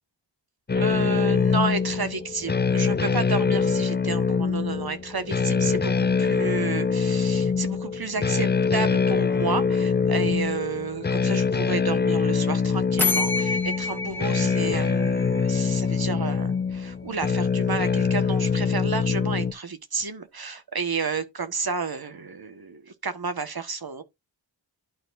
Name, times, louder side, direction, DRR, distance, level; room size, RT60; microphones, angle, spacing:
sound 1, 0.7-19.5, left 5 dB, 25° left, 0.5 m, -24 dB
voice 1, 0.7-5.9 6.2-24.0, right 4 dB, 55° right, 1.3 m, -31 dB
sound 2, 13.0-15.7, left 3 dB, 5° left, 1.7 m, -28 dB
12.0 x 4.3 x 2.5 m
wide cardioid pair, 60°, 44 cm